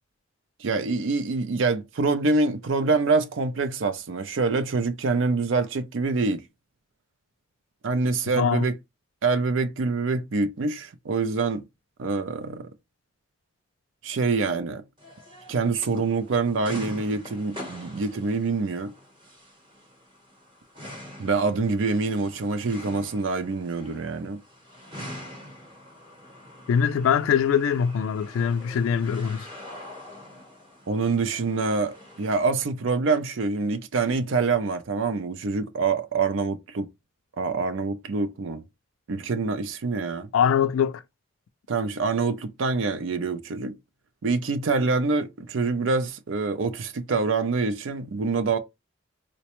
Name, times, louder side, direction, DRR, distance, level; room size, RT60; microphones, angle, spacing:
voice 1, 0.6-6.4 7.8-8.8 9.2-11.6 12.0-12.7 14.0-14.8 15.5-18.9 21.2-24.4 30.9-36.9 37.3-38.6 39.1-40.3 41.7-43.8 44.2-48.6, right 4 dB, 70° right, 0.5 m, -25 dB
voice 2, 8.4-8.7 26.7-29.5 40.3-41.0, left 7 dB, 80° left, 0.3 m, -23 dB
sound 1, 15.0-32.4, left 1 dB, 25° right, 0.8 m, -44 dB
3.9 x 2.1 x 2.9 m
head